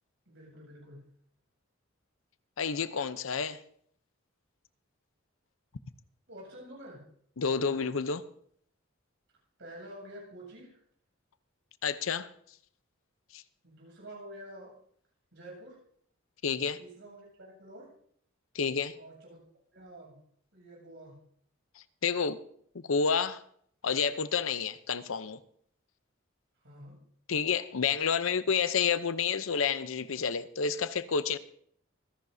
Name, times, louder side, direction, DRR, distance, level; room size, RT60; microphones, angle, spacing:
voice 1, 0.3-1.0 6.3-7.0 9.6-10.8 13.6-14.7 15.3-15.8 16.8-17.9 18.9-19.4 19.7-20.2 20.5-21.2 26.6-27.0, right 1 dB, 70° right, 7.7 m, -48 dB
voice 2, 2.6-3.6 7.4-8.2 11.8-12.3 13.3-13.4 16.4-16.8 18.5-18.9 22.0-22.4 22.9-23.4 23.8-25.4 27.3-31.4, left 6 dB, 80° left, 0.7 m, -29 dB
25.5 x 10.5 x 2.7 m
head